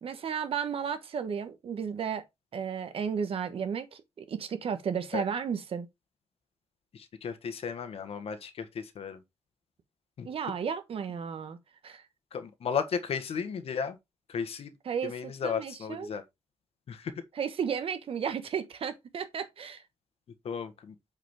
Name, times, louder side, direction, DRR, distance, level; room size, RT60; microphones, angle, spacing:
voice 1, 0.0-2.2 2.5-5.9 10.2-11.6 11.8-12.0 14.8-16.1 17.3-19.8, right 7 dB, 60° right, 1.2 m, -33 dB
voice 2, 6.9-9.2 10.2-10.3 12.3-14.0 14.3-14.7 15.0-16.2 16.9-17.1 20.4-20.9, left 6 dB, 65° left, 1.4 m, -34 dB
8.0 x 5.0 x 3.6 m
wide cardioid pair, 155°, 11 cm